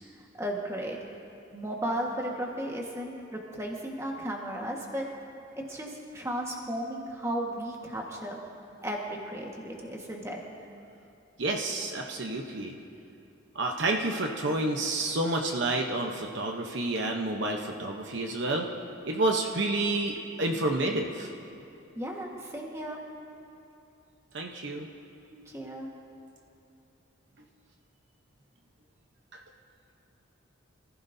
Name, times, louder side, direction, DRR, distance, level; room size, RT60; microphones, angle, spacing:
voice 1, 0.4-1.0 1.5-5.1 5.5-8.4 8.8-10.4 21.9-23.0 25.3-25.9, right 1 dB, 15° right, -1 dB, 1.5 m, -35 dB
voice 2, 11.4-12.8 13.5-18.7 19.0-21.3 24.3-24.9, right 2 dB, 60° right, 1 dB, 0.9 m, -29 dB
25.5 x 15.0 x 2.7 m, 2.7 s
head